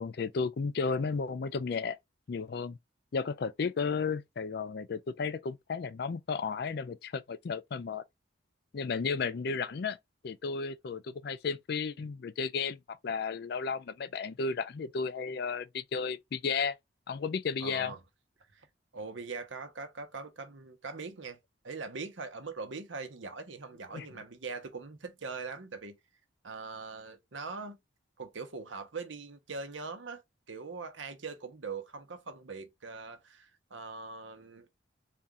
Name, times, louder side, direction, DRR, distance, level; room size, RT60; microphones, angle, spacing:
voice 1, 0.0-2.0 2.3-2.8 3.1-8.0 8.7-10.0 10.2-16.8 17.1-17.9 23.9-24.1, left 5 dB, 55° left, 0.4 m, -33 dB
voice 2, 17.6-18.0 18.5-18.7 18.9-21.4 21.6-26.0 26.4-27.8 28.2-30.2 30.5-34.7, right 4 dB, 80° right, 0.9 m, -42 dB
4.1 x 2.4 x 3.6 m
head